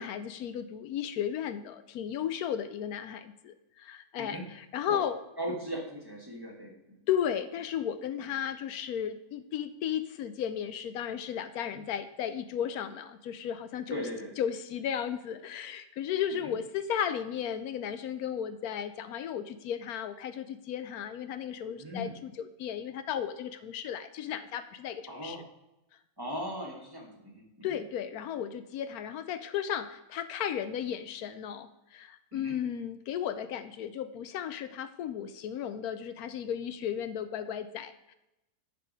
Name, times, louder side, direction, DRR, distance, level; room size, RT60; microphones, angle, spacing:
voice 1, 0.0-5.2 7.1-14.1 14.4-25.4 27.6-38.1, left 9 dB, 80° left, 12 dB, 1.1 m, -34 dB
voice 2, 5.4-6.8 11.7-11.8 13.9-14.3 16.3-16.5 21.7-22.2 25.1-25.4 26.2-27.7 32.3-32.6, equal, 15° right, -1 dB, 1.4 m, -38 dB
10.0 x 4.6 x 5.2 m, 0.91 s
omnidirectional pair, 1.6 m